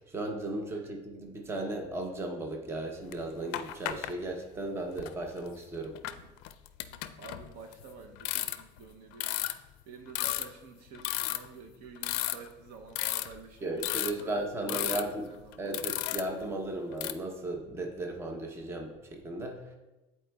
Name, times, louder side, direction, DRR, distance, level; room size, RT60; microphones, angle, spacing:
voice 1, 0.0-6.0 13.6-15.3 15.6-19.6, right 2 dB, 15° right, 2 dB, 0.7 m, -36 dB
sound 1, 3.1-3.2 3.5-4.1 5.0-5.1 5.9-7.8 8.2-8.8 9.2-9.5 10.1-10.5 10.9-11.5 12.0-12.7 13.0-13.4 13.8-14.2 14.7-15.0 15.5-16.5 16.9-17.1, left 15 dB, 80° left, 0.4 m, -33 dB
voice 2, 6.0-6.3 7.2-9.4 9.8-16.0, right 5 dB, 65° right, 5 dB, 0.7 m, -50 dB
10.5 x 4.3 x 2.3 m, 1.1 s
cardioid pair, 135°, 15 cm